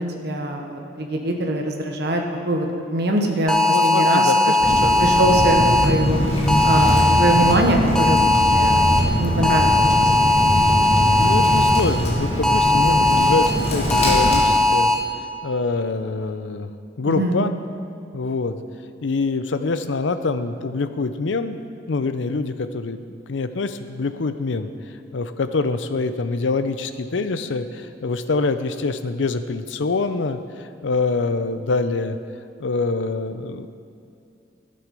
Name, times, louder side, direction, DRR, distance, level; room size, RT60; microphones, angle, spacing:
voice 1, 0.0-4.3 4.8-6.2 6.6-8.9 9.2-10.3 17.0-17.4, right 1 dB, 60° right, 2 dB, 1.1 m, -23 dB
sound 1, 3.5-5.9 6.5-7.5 7.9-9.0 9.4-11.8 12.4-13.5 13.9-14.9, left 2 dB, 5° left, 0.6 m, -18 dB
voice 2, 3.7-4.8 11.2-14.9 15.4-16.7 17.0-17.5 18.1-18.6 19.0-23.0 23.3-24.7 25.1-32.2 32.6-33.7, left 3 dB, 75° left, 11 dB, 0.6 m, -25 dB
Bird, 4.6-14.4, left 1 dB, 35° left, 1.9 m, -22 dB
12.5 x 7.7 x 5.3 m, 2.4 s
head